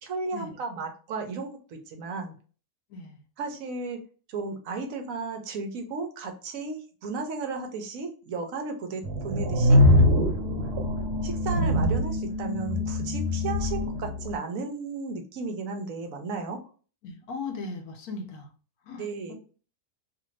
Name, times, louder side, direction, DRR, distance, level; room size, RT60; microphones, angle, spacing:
voice 1, 0.0-2.3 3.4-4.0 4.3-9.8 11.2-16.6 19.0-19.3, right 4 dB, 65° right, 1.1 m, -34 dB
voice 2, 2.9-3.2 17.0-18.5 18.8-19.3, left 3 dB, 80° left, 1.2 m, -38 dB
sound 1, 9.0-14.3, left 1 dB, 90° right, 1.3 m, -23 dB
2.7 x 2.6 x 3.1 m
omnidirectional pair, 1.6 m